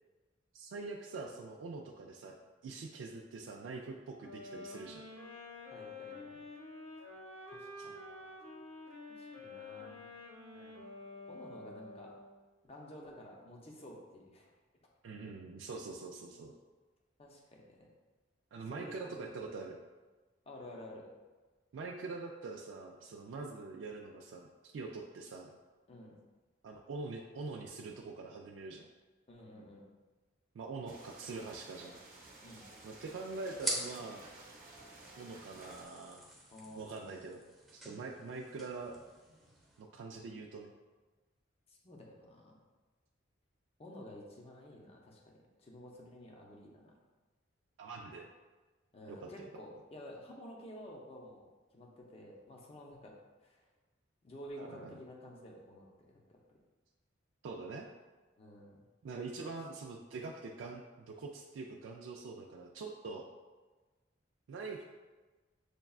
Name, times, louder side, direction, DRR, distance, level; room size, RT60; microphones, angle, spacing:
voice 1, 0.5-2.4 2.6-5.0 7.8-8.4 10.5-10.8 15.0-16.5 18.5-19.8 21.7-25.5 26.6-28.9 30.5-32.0 32.8-34.3 35.2-36.2 36.8-37.4 37.7-38.9 39.8-40.7 47.8-48.3 49.1-49.5 54.6-55.0 57.4-57.9 59.0-63.3 64.5-64.8, right 3 dB, 75° right, 0 dB, 0.3 m, -44 dB
Sax Alto - G minor, 4.2-12.4, left 2 dB, 70° left, 1.0 m, -49 dB
voice 2, 5.7-6.4 7.5-8.0 9.1-10.1 11.3-12.1 12.6-14.5 17.2-17.9 18.7-19.2 20.5-21.1 25.9-26.2 29.3-29.8 32.4-32.7 36.5-37.2 41.7-42.6 43.8-45.3 45.6-46.9 48.9-53.1 53.4-53.6 54.2-55.9 56.1-56.4 58.4-58.8, left 1 dB, 30° left, -1 dB, 0.6 m, -51 dB
sound 1, 30.9-35.9, right 2 dB, 50° right, 0.8 m, -54 dB
sound 2, 32.2-39.8, right 1 dB, ahead, 0.8 m, -45 dB
6.6 x 2.3 x 2.3 m, 1.3 s
head